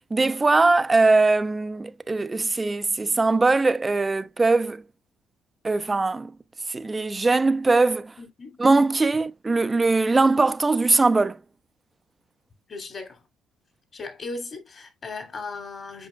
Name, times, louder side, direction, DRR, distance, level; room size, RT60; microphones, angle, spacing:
voice 1, 0.1-4.8 5.6-6.3 6.7-8.1 8.6-11.4, right 3 dB, 25° right, 0.6 m, -21 dB
voice 2, 8.2-8.6 12.7-13.2 13.9-16.1, left 3 dB, 45° left, 2.6 m, -37 dB
8.0 x 5.4 x 2.2 m
supercardioid pair, 75°, 0 cm